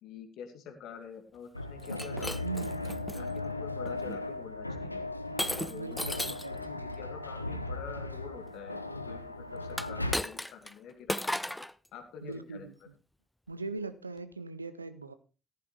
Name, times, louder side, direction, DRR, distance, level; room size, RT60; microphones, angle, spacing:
voice 1, 0.0-2.4 3.1-5.0 5.6-6.1 6.5-8.8 9.1-11.5 11.9-12.7, left 7 dB, 60° left, 6 dB, 2.1 m, -46 dB
sound 1, 1.5-10.2, left 2 dB, 90° left, 0.5 m, -37 dB
Shatter, 1.8-3.2 3.9-4.2 5.4-6.5 9.7-10.7 11.1-11.7, left 1 dB, 5° left, 0.7 m, -35 dB
voice 2, 2.4-3.0 5.7-6.8 12.2-12.7 13.5-15.1, right 3 dB, 85° right, 13 dB, 0.6 m, -40 dB
14.5 x 11.0 x 3.2 m, 0.32 s
figure-of-eight pair, 45°, 0 cm